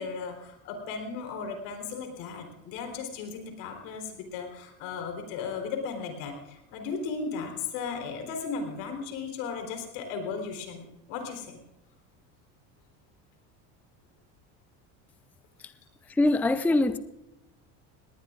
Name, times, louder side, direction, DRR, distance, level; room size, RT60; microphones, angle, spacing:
voice 1, 0.0-11.6, left 5 dB, 75° left, 3.9 m, -36 dB
voice 2, 16.2-17.0, left 2 dB, 5° left, 0.5 m, -23 dB
19.0 x 19.0 x 2.5 m
supercardioid pair, 105°, 39 cm